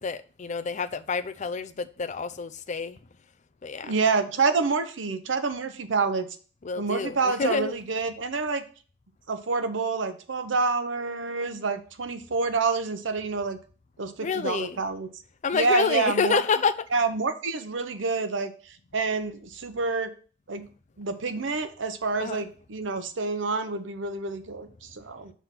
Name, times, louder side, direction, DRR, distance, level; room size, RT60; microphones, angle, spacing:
voice 1, 0.0-3.0 3.6-3.9 6.6-7.7 14.2-14.8 15.4-16.7 22.2-22.4, left 5 dB, 40° left, 0.4 m, -28 dB
voice 2, 3.8-6.3 6.8-8.6 9.3-13.6 14.0-15.1 15.5-16.4 16.9-20.1 20.5-20.7 21.0-25.3, right 4 dB, 80° right, 0.8 m, -28 dB
5.7 x 3.5 x 5.9 m
head